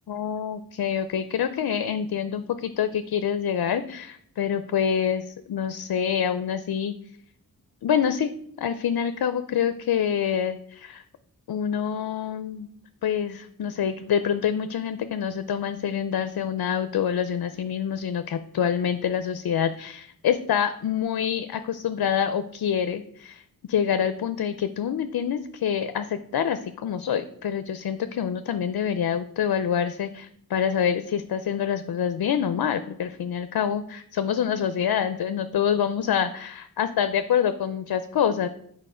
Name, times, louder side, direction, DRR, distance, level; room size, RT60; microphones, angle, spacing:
voice 1, 0.1-6.9 7.8-8.3 8.6-11.0 11.5-12.7 13.0-23.4 23.7-38.5, left 8 dB, 70° left, 10 dB, 0.6 m, -26 dB
6.8 x 4.7 x 4.9 m, 0.66 s
cardioid pair, 70°, 37 cm